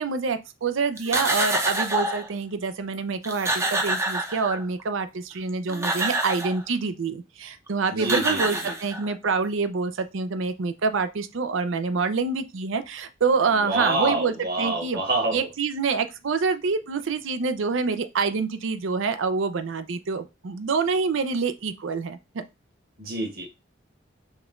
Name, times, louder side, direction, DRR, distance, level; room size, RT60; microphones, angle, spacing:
voice 1, 0.0-15.0 15.3-22.4, right 4 dB, 75° right, 0.5 m, -26 dB
sound 1, 1.0-2.3 2.9-3.0 3.2-4.8 5.5-6.6 7.7-7.8 8.0-9.3, right 2 dB, 15° right, 0.6 m, -27 dB
voice 2, 7.9-8.7 13.6-15.5 23.0-23.5, right 2 dB, 50° right, 1.3 m, -27 dB
5.1 x 3.0 x 2.5 m
head